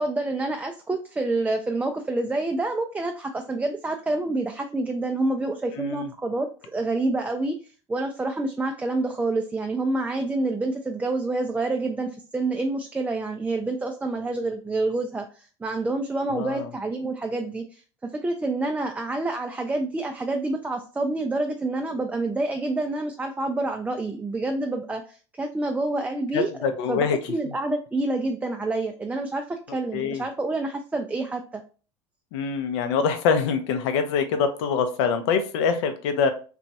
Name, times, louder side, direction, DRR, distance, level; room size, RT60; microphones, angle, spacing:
voice 1, 0.0-7.5 7.9-26.5 26.9-31.6, right 2 dB, 10° right, 3 dB, 0.3 m, -28 dB
voice 2, 5.8-6.1 16.3-16.7 26.3-27.2 29.9-30.2 32.3-36.3, left 6 dB, 65° left, 8 dB, 0.5 m, -24 dB
2.9 x 2.3 x 2.7 m, 0.37 s
hypercardioid pair, 75°, 15 cm